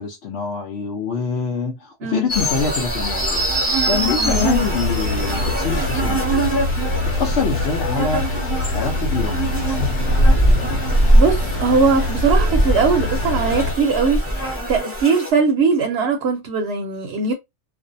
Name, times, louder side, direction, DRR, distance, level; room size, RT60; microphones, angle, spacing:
voice 1, 0.0-8.2 8.7-9.5, left 5 dB, 65° left, 0.8 m, -25 dB
sound 1, 2.3-15.3, right 2 dB, 10° left, 1.1 m, -25 dB
sound 2, 4.3-13.7, left 2 dB, 90° left, 1.0 m, -25 dB
sound 3, 9.5-14.6, right 1 dB, 25° left, 0.6 m, -19 dB
voice 2, 11.1-17.3, right 4 dB, 65° right, 0.8 m, -20 dB
2.5 x 2.1 x 2.5 m
omnidirectional pair, 1.3 m